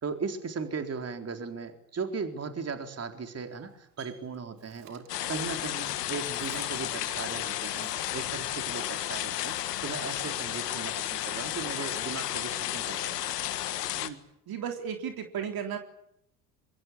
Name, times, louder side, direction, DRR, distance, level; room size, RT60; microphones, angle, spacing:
voice 1, 0.0-9.6 9.8-13.2 13.6-13.8, right 5 dB, 30° right, 6 dB, 4.1 m, -37 dB
Bird, 3.4-8.9 9.2-10.5 10.9-12.6, right 10 dB, 85° right, 3.7 m, -55 dB
sound 1, 5.1-14.1, left 13 dB, 90° left, 1.8 m, -33 dB
voice 2, 13.8-14.2 14.5-15.8, right 8 dB, 50° right, 5 dB, 3.8 m, -35 dB
26.0 x 23.5 x 8.6 m, 0.76 s
hypercardioid pair, 80°, 46 cm